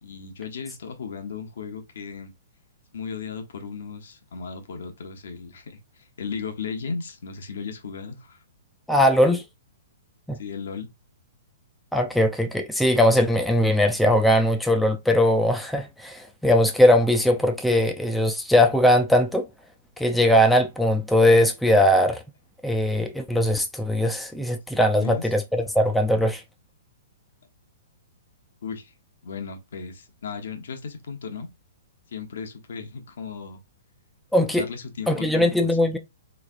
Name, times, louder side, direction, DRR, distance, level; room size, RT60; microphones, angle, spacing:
voice 1, 0.0-2.3 2.9-8.4 10.4-10.9 24.9-25.3 28.6-28.9 29.2-31.5 32.1-33.6 34.5-35.8, left 5 dB, 75° left, 0.9 m, -36 dB
voice 2, 8.9-9.4 10.3-10.4 11.9-19.5 20.0-22.2 22.6-26.4 34.3-34.7 35.1-36.0, left 1 dB, ahead, 0.4 m, -20 dB
3.4 x 3.2 x 2.4 m
hypercardioid pair, 150°, 0 cm